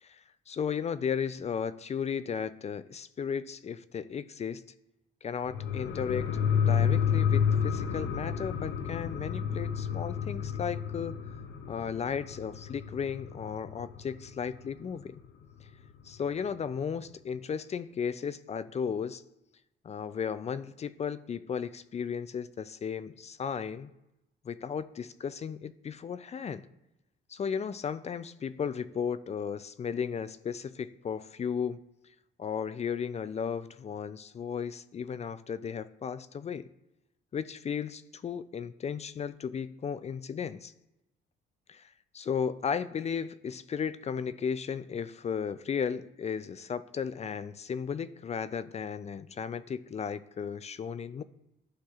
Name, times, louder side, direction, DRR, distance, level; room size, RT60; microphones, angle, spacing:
voice 1, 0.0-4.6 5.2-6.3 6.6-11.2 11.7-15.2 16.0-19.2 19.8-23.9 24.4-26.6 27.3-31.8 32.4-36.7 37.3-40.7 41.7-51.2, left 7 dB, 35° left, 14 dB, 0.4 m, -35 dB
sound 1, 5.4-14.6 14.9-15.0, left 7 dB, 70° left, 0.7 m, -30 dB
11.5 x 5.7 x 2.4 m, 0.91 s
cardioid pair, 90°, 20 cm